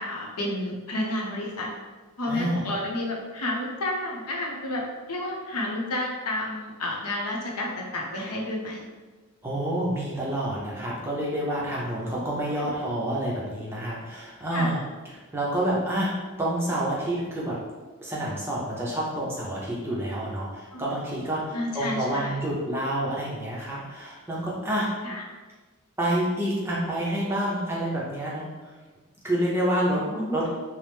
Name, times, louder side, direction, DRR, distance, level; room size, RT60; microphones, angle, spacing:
voice 1, 0.0-1.7 2.2-4.8 5.1-8.9 12.5-12.7 14.5-14.7 20.7-20.9 21.5-22.4 25.0-25.2 29.8-30.4, left 1 dB, 90° left, -2 dB, 0.6 m, -31 dB
voice 2, 2.3-2.6 9.4-14.8 15.1-17.6 18.0-24.9 26.0-28.7 29.2-30.5, right 1 dB, 10° right, -6 dB, 0.5 m, -28 dB
2.9 x 2.0 x 3.3 m, 1.3 s
head